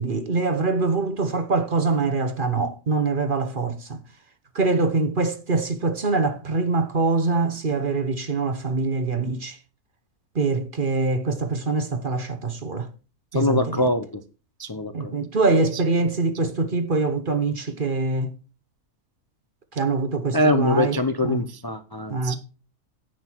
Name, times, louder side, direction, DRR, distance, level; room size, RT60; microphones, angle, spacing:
voice 1, 0.0-4.0 4.5-9.6 10.3-12.9 13.3-13.9 14.9-18.3 19.7-21.4 22.1-22.4, right 3 dB, 40° right, 1.0 m, -24 dB
voice 2, 13.3-14.2 14.6-15.1 20.3-22.4, left 2 dB, 25° left, 0.5 m, -23 dB
10.0 x 7.9 x 4.5 m
omnidirectional pair, 1.6 m